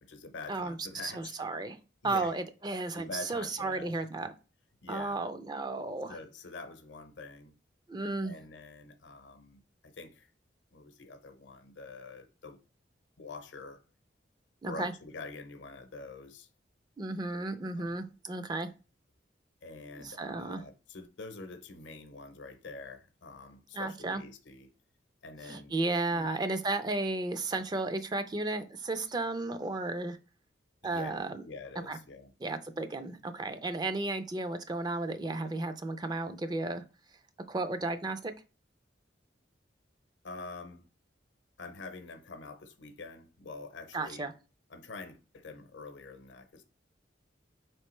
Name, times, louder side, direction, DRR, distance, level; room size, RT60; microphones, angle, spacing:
voice 1, 0.0-1.4 2.0-2.3 2.9-4.3 4.8-5.2 6.1-7.6 8.2-10.3 10.7-12.6 13.2-13.8 14.7-16.5 17.8-18.0 19.6-24.7 25.2-25.8 26.1-26.3 30.8-32.3 40.2-40.8 41.6-44.3 44.7-46.6, left 3 dB, 85° left, 0.7 m, -46 dB
voice 2, 1.0-1.8 2.0-4.3 4.9-6.2 7.9-8.3 14.6-14.9 17.0-18.7 20.0-20.6 23.7-24.2 25.4-30.2 30.8-31.4 31.9-32.0 32.4-36.8 37.5-38.3 43.9-44.3, right 2 dB, 20° right, 0.3 m, -34 dB
4.8 x 3.2 x 3.1 m
head